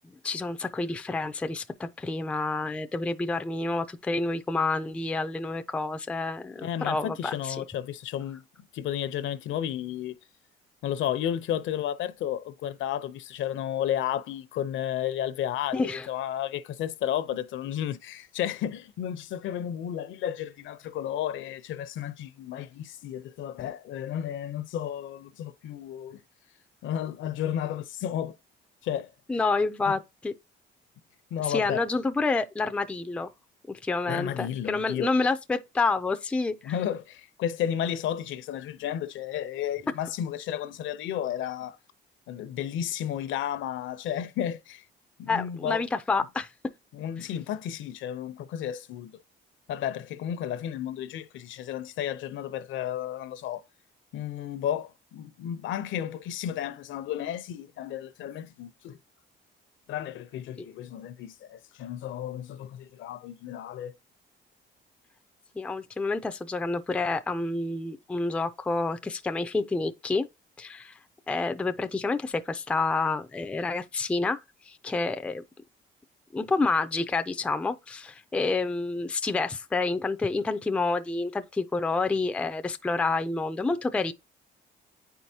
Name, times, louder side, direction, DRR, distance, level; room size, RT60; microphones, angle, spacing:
voice 1, 0.0-7.6 15.7-16.1 29.3-30.3 31.4-33.3 33.7-36.7 45.3-46.5 60.6-60.7 65.6-70.3 70.6-71.0 71.3-75.4 76.3-84.1, left 3 dB, 5° left, 0.3 m, -28 dB
voice 2, 6.6-8.4 8.7-10.2 10.8-26.2 26.8-28.3 28.8-29.1 31.3-31.8 34.1-35.1 36.6-41.8 42.3-44.8 45.2-45.8 46.9-49.2 49.7-53.6 54.1-59.0 59.9-63.9, left 10 dB, 75° left, 0.6 m, -32 dB
9.1 x 4.6 x 2.7 m
cardioid pair, 160°, 20 cm